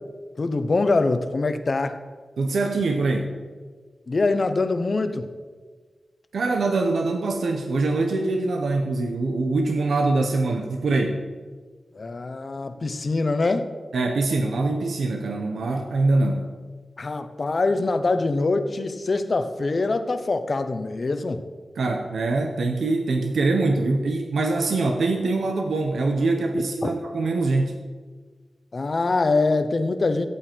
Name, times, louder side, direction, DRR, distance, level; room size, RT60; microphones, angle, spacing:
voice 1, 0.4-1.9 4.1-5.3 11.9-13.7 17.0-21.4 28.7-30.3, left 3 dB, 50° left, 9 dB, 1.0 m, -24 dB
voice 2, 2.4-3.3 6.3-11.2 13.9-16.5 21.8-27.8, right 3 dB, 90° right, 4 dB, 0.9 m, -23 dB
16.0 x 8.3 x 4.6 m, 1.5 s
cardioid pair, 70°, 0 cm